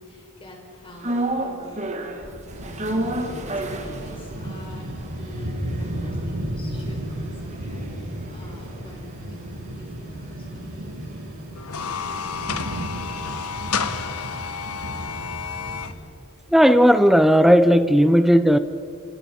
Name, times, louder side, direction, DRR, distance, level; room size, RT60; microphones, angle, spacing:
voice 1, 0.0-11.2, left 1 dB, 25° left, 0 dB, 5.3 m, -46 dB
sound 1, 1.0-9.3 9.6-9.7, right 1 dB, 30° right, 2.3 m, -32 dB
sound 2, 2.5-15.9, right 1 dB, 75° right, 7.9 m, -34 dB
sound 3, 11.6-15.9, left 6 dB, 85° left, 1.3 m, -30 dB
voice 2, 16.5-18.6, equal, ahead, 11 dB, 0.8 m, -15 dB
27.5 x 26.0 x 5.5 m, 2.4 s
head